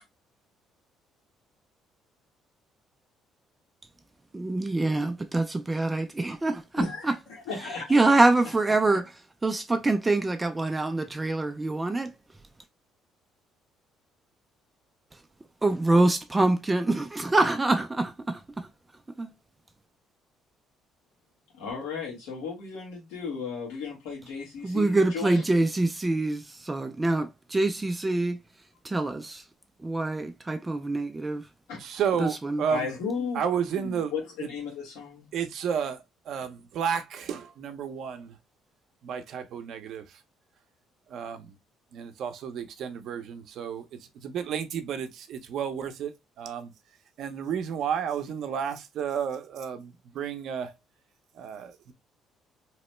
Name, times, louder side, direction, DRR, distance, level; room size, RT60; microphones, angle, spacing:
voice 1, 4.3-6.6 7.9-9.0 9.4-12.1 15.6-18.4 24.6-28.4 28.9-29.4 29.8-31.4 32.2-32.6, right 2 dB, 15° right, 0.3 m, -25 dB
voice 2, 6.8-8.0 8.4-8.6 8.9-9.0 21.5-25.4 31.7-31.8 32.7-33.4 33.7-35.3, left 5 dB, 90° left, 1.3 m, -35 dB
voice 3, 31.8-32.9 33.3-34.1 34.4-34.5 35.3-38.3 39.0-40.1 41.1-41.5 41.9-43.9 44.2-46.7 47.2-50.7 51.4-51.9, right 7 dB, 65° right, 0.6 m, -32 dB
3.0 x 2.1 x 3.0 m
cardioid pair, 105°, 0 cm